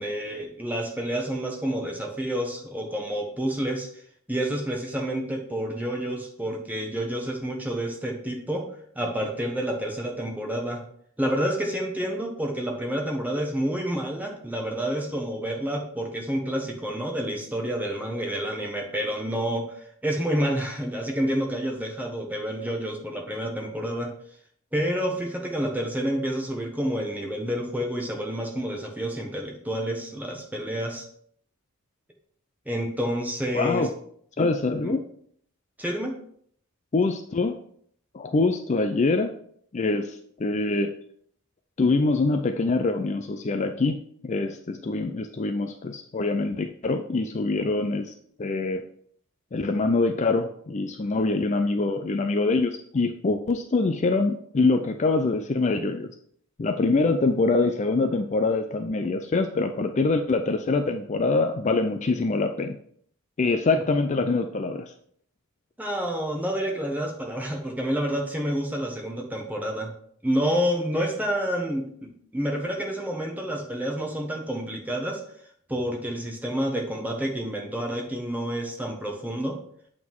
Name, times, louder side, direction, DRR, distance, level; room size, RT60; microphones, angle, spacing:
voice 1, 0.0-3.9 4.3-8.7 8.9-10.8 11.2-19.8 20.0-24.1 24.7-31.1 32.7-33.9 34.8-35.0 35.8-36.2 65.8-69.9 70.2-75.2 75.7-79.6, equal, 10° right, 1 dB, 1.2 m, -29 dB
voice 2, 33.5-33.9 34.4-35.0 36.9-37.6 38.1-39.3 39.7-40.9 41.8-44.0 44.2-48.1 48.4-48.8 49.5-56.1 56.6-62.8 63.4-64.9, left 3 dB, 35° left, 6 dB, 0.4 m, -24 dB
8.2 x 3.8 x 4.6 m, 0.63 s
head